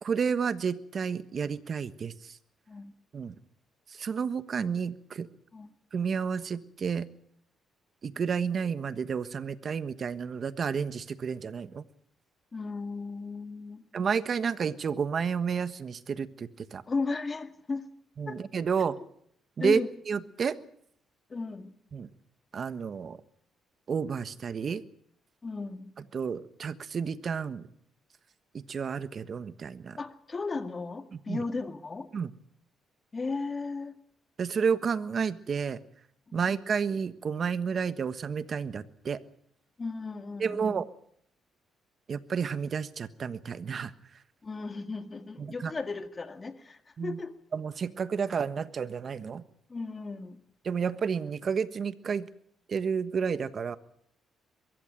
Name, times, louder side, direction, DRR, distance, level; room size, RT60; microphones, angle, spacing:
voice 1, 0.0-2.4 3.1-3.3 3.9-5.3 5.9-7.1 8.0-11.8 13.9-16.8 18.2-19.0 19.6-19.8 20.1-20.6 21.9-22.1 22.5-23.2 23.9-24.8 26.0-27.7 28.5-30.0 31.1-31.4 32.1-32.3 34.4-35.8 36.3-39.2 40.4-40.9 42.1-44.2 45.4-45.7 47.0-47.2 47.5-49.4 50.6-52.3 52.7-53.8, right 6 dB, 50° right, 13 dB, 1.3 m, -31 dB
voice 2, 12.5-13.9 16.9-17.9 18.3-18.4 19.6-19.9 21.3-21.7 25.4-25.9 30.0-32.1 33.1-33.9 36.3-36.4 39.8-40.8 44.4-47.4 49.7-50.4, left 3 dB, 30° left, 8 dB, 2.2 m, -35 dB
22.5 x 15.5 x 9.2 m, 0.69 s
cardioid pair, 90°, 0 cm